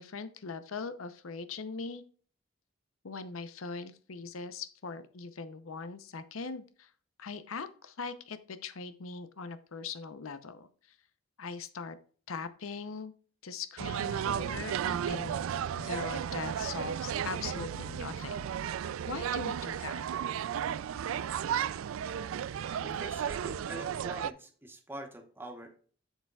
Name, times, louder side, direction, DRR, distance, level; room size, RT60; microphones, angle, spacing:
voice 1, 0.0-2.0 3.0-6.9 7.2-10.7 11.4-12.0 12.3-13.1 13.4-15.4 15.7-18.5 19.1-20.0, left 4 dB, 90° left, 12 dB, 0.7 m, -41 dB
sound 1, 13.8-24.3, right 8 dB, 80° right, 0.3 m, -34 dB
voice 2, 22.8-25.8, right 1 dB, 10° right, 4 dB, 1.0 m, -44 dB
8.0 x 6.6 x 2.3 m, 0.43 s
head